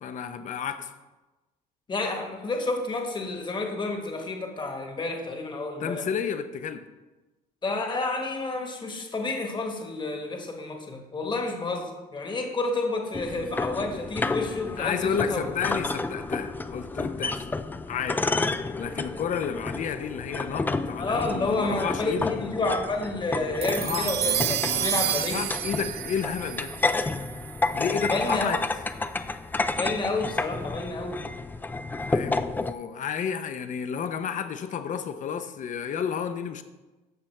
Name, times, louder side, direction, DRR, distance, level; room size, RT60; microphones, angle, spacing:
voice 1, 0.0-0.9 5.8-6.8 14.8-17.5 17.9-18.3 18.8-22.3 23.8-26.7 27.7-28.6 31.9-36.6, left 7 dB, 50° left, 10 dB, 0.7 m, -31 dB
voice 2, 1.9-6.1 7.6-15.4 21.0-25.4 27.8-28.5 29.7-31.2, left 2 dB, 25° left, 3 dB, 1.4 m, -30 dB
sound 1, 13.1-32.7, left 3 dB, 10° left, 0.3 m, -31 dB
sound 2, 23.6-28.1, right 11 dB, 70° right, 0.6 m, -30 dB
13.5 x 5.6 x 3.3 m, 1.1 s
cardioid pair, 110°, 17 cm